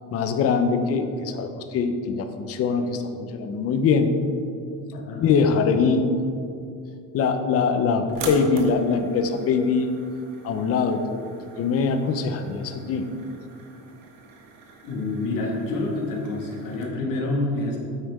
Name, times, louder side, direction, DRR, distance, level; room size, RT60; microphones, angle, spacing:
voice 1, 0.1-4.1 5.2-6.1 7.1-9.9 10.4-11.3 11.6-13.1, left 5 dB, 45° left, 7 dB, 0.7 m, -23 dB
voice 2, 4.9-5.3 14.8-17.8, left 2 dB, 80° left, -2 dB, 1.9 m, -27 dB
sound 1, 8.1-16.8, right 3 dB, 80° right, 1.6 m, -41 dB
9.1 x 8.3 x 3.6 m, 2.5 s
cardioid pair, 170°, 32 cm